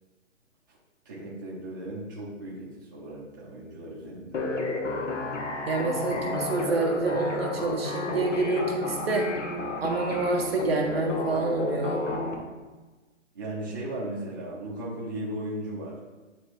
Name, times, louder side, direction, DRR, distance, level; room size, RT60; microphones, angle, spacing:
voice 1, 1.0-4.4 13.3-16.0, right 1 dB, 15° right, -7 dB, 0.8 m, -36 dB
sound 1, 4.3-12.3, left 2 dB, 70° left, 1.1 m, -31 dB
voice 2, 5.7-9.3 9.8-12.0, right 3 dB, 50° right, 2 dB, 0.8 m, -27 dB
8.9 x 3.8 x 3.1 m, 1.2 s
hypercardioid pair, 175°, 38 cm